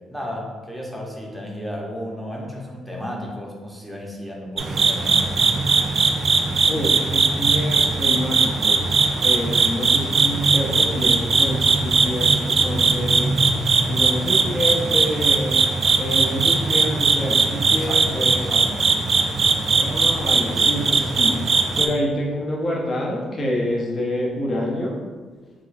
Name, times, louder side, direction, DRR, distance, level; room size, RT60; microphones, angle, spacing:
voice 1, 0.1-5.3 17.7-18.8, equal, ahead, -2 dB, 0.7 m, -34 dB
sound 1, 4.6-21.9, right 4 dB, 45° right, 0.3 m, -20 dB
voice 2, 6.7-13.3 13.9-15.6 16.0-18.6 19.7-21.4 21.8-25.0, equal, 40° left, -3 dB, 0.6 m, -27 dB
3.5 x 2.3 x 3.2 m, 1.4 s
cardioid pair, 90°, 0 cm